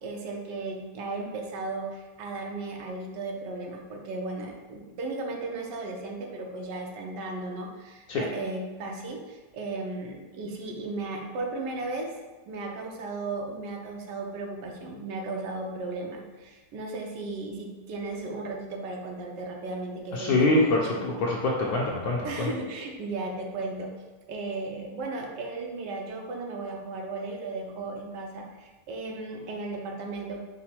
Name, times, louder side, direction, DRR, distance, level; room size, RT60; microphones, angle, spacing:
voice 1, 0.0-12.2 12.5-21.0 22.2-23.9 24.3-30.4, right 3 dB, 90° right, 1 dB, 1.3 m, -35 dB
voice 2, 20.1-22.5, left 2 dB, 70° left, -3 dB, 1.0 m, -25 dB
5.0 x 2.1 x 4.3 m, 1.3 s
omnidirectional pair, 1.8 m